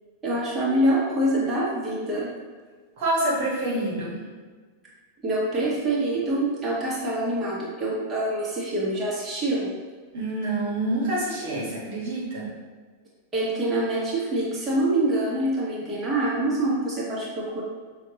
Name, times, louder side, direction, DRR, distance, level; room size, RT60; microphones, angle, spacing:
voice 1, 0.2-2.3 5.2-9.7 13.3-17.6, right 1 dB, 15° right, -7 dB, 1.3 m, -25 dB
voice 2, 3.0-4.2 10.1-12.5, right 1 dB, 50° right, -6 dB, 1.2 m, -27 dB
5.9 x 2.5 x 2.9 m, 1.4 s
figure-of-eight pair, 90°, 0 cm